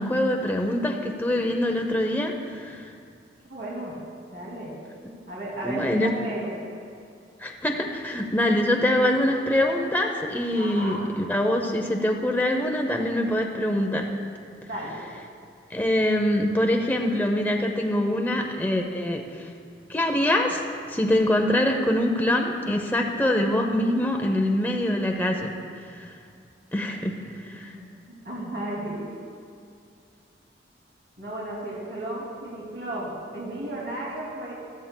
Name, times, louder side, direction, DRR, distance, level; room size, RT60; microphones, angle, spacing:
voice 1, 0.0-2.8 5.6-6.1 7.4-14.1 15.7-19.2 19.9-20.6 20.9-25.5 25.9-26.1 26.7-27.2 27.4-27.7, left 1 dB, 10° left, 2 dB, 0.6 m, -24 dB
voice 2, 3.5-4.0 4.3-4.8 5.3-6.5 10.6-11.1 14.6-15.0 27.6-27.8 28.1-29.0 31.2-34.5, right 1 dB, 70° right, -6 dB, 2.4 m, -34 dB
15.0 x 13.5 x 2.2 m, 2.3 s
head